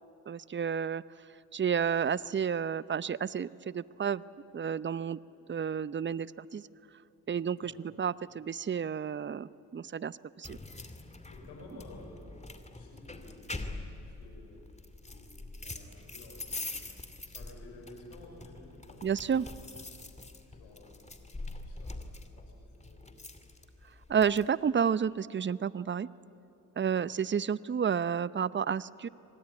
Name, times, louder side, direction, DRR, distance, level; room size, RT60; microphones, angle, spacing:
voice 1, 0.3-1.0 1.5-4.2 4.5-5.2 5.5-6.6 7.3-7.7 8.0-10.6 19.0-19.5 24.1-26.1 26.8-29.1, right 7 dB, 30° right, 19 dB, 0.7 m, -31 dB
voice 2, 7.5-7.8 10.9-14.7 15.0-16.7 17.3-19.6 20.0-23.4 26.8-27.0, left 2 dB, 85° left, 1 dB, 6.1 m, -54 dB
sound 1, 10.4-24.5, left 2 dB, 15° left, 2.5 m, -44 dB
25.0 x 19.5 x 9.6 m, 2.9 s
hypercardioid pair, 50°, 40 cm